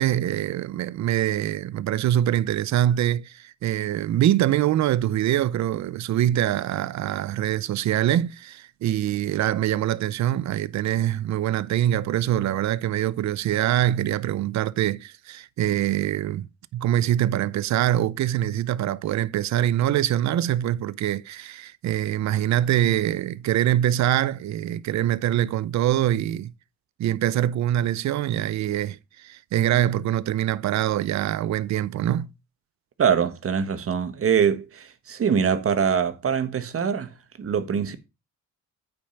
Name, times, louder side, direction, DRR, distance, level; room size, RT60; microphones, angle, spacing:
voice 1, 0.0-26.5 27.0-32.3, right 12 dB, 65° right, 0.7 m, -24 dB
voice 2, 33.0-37.1 37.4-38.0, right 7 dB, 45° right, 1.4 m, -23 dB
8.6 x 5.3 x 5.7 m
cardioid pair, 90°, 30 cm